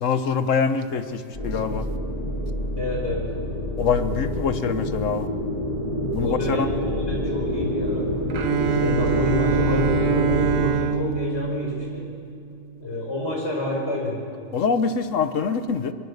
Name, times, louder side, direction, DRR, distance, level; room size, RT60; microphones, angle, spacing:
voice 1, 0.0-1.9 3.8-5.3 6.1-6.7 8.4-8.5 14.5-15.9, left 6 dB, 80° left, 10 dB, 1.4 m, -24 dB
sound 1, 1.3-10.6, left 1 dB, 30° left, 4.6 m, -27 dB
voice 2, 2.8-3.2 6.2-8.2 8.8-12.1 12.8-14.2, left 1 dB, 55° left, -1 dB, 5.5 m, -28 dB
Bowed string instrument, 8.3-12.4, right 8 dB, 85° right, 1.3 m, -25 dB
23.5 x 21.5 x 6.6 m, 2.5 s
omnidirectional pair, 1.3 m